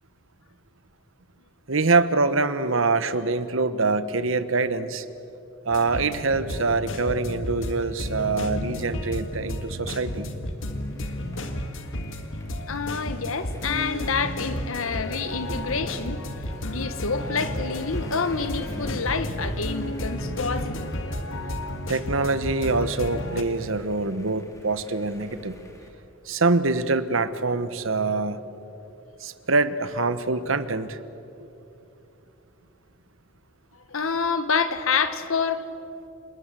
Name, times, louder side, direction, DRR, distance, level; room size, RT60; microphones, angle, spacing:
voice 1, 1.7-5.1 5.6-10.3 21.9-25.5 26.2-28.4 29.2-31.0 31.4-31.5, right 3 dB, 70° right, 13 dB, 1.1 m, -24 dB
sound 1, 5.7-23.4, left 1 dB, 65° left, 1.8 m, -32 dB
sound 2, 10.6-25.9, equal, 15° left, 2.9 m, -44 dB
voice 2, 12.7-16.2 16.7-20.9 33.9-35.7, left 5 dB, 80° left, 11 dB, 1.3 m, -27 dB
29.0 x 20.0 x 7.6 m, 2.9 s
head